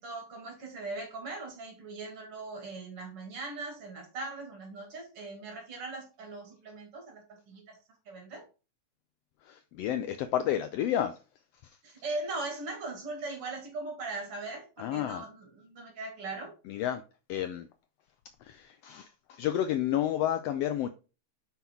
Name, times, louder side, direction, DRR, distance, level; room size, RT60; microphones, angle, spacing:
voice 1, 0.0-7.8 8.1-8.4 11.8-16.5, right 3 dB, 50° right, 2.8 m, -40 dB
voice 2, 9.4-11.2 11.6-11.8 14.8-15.2 16.7-17.0 17.3-17.7 18.4-20.9, left 11 dB, 85° left, 1.4 m, -31 dB
5.8 x 5.6 x 4.4 m
omnidirectional pair, 3.3 m